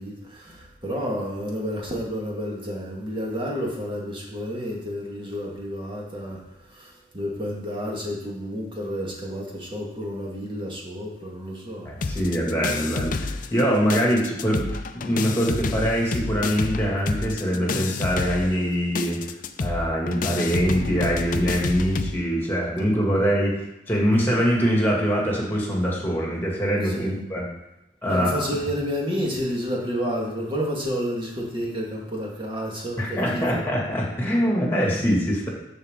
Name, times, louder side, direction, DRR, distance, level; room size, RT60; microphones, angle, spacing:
voice 1, 0.0-12.2 26.8-27.2 28.1-33.6, equal, 30° right, -3 dB, 2.0 m, -30 dB
voice 2, 11.9-14.6 14.9-19.2 19.6-23.6 23.9-27.5 28.0-28.5 33.0-35.5, equal, 10° left, -3 dB, 2.4 m, -23 dB
sound 1, 12.0-13.6 13.9-22.1, left 3 dB, 50° left, 0.5 m, -29 dB
13.5 x 4.5 x 3.9 m, 0.90 s
head